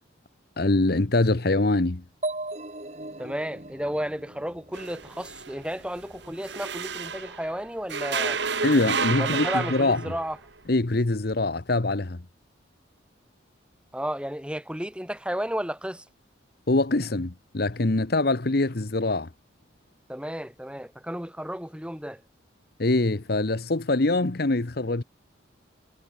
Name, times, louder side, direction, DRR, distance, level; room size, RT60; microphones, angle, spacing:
voice 1, 0.6-2.0 8.6-10.0 10.7-12.2 16.7-19.3 22.8-25.0, left 2 dB, 50° left, 1.0 m, -24 dB
sound 1, 2.2-5.9, right 2 dB, 35° right, 4.5 m, -37 dB
voice 2, 3.2-8.4 9.2-10.4 13.9-16.0 20.1-22.2, equal, 5° right, 4.5 m, -33 dB
sound 2, 4.7-7.5 7.9-10.4, right 5 dB, 60° right, 1.8 m, -30 dB
head